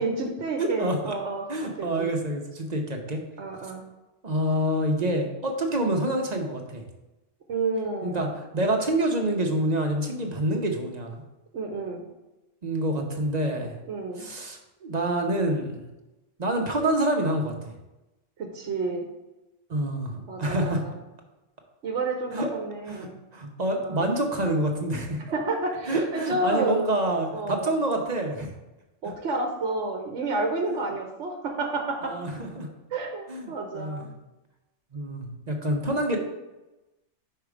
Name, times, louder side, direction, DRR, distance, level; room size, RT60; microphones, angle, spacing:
voice 1, 0.0-2.1 3.4-3.8 7.5-8.3 11.5-12.0 13.9-14.3 18.4-19.1 20.3-20.9 21.8-23.2 23.8-24.0 25.3-27.0 27.3-27.7 29.0-32.2 32.9-34.1, right 3 dB, 70° right, 2 dB, 1.1 m, -30 dB
voice 2, 0.6-1.1 1.5-3.2 4.2-6.8 8.0-11.2 12.6-13.8 14.2-15.8 16.4-17.7 19.7-20.8 22.3-22.5 22.9-25.2 25.9-28.5 29.0-29.1 32.0-32.7 33.3-34.1 34.9-36.2, right 1 dB, 40° right, 2 dB, 0.8 m, -27 dB
5.6 x 4.8 x 4.8 m, 1.0 s
omnidirectional pair, 1.3 m